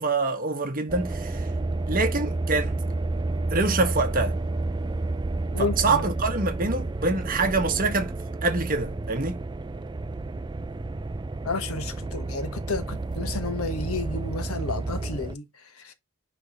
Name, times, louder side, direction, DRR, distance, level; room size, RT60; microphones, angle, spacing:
voice 1, 0.0-1.5 1.9-2.7 3.5-4.3 5.6-8.1 8.4-9.4, right 3 dB, 40° right, 1.3 m, -25 dB
sound 1, 0.9-15.3, right 2 dB, 20° right, 0.4 m, -30 dB
voice 2, 5.5-6.0 11.4-15.4 15.8-15.9, left 3 dB, 75° left, 1.3 m, -31 dB
10.0 x 3.5 x 2.9 m
head